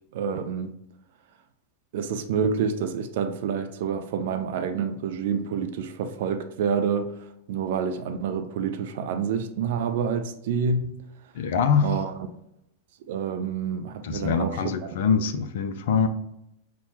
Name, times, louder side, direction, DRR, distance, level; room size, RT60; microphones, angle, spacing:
voice 1, 0.1-0.7 1.9-7.1 7.5-10.9 11.8-12.1 13.1-14.6, right 6 dB, 55° right, 0.4 m, -28 dB
voice 2, 11.3-12.1 14.0-16.1, left 6 dB, 55° left, 0.4 m, -24 dB
5.5 x 2.2 x 2.8 m
figure-of-eight pair, 90°, 0 cm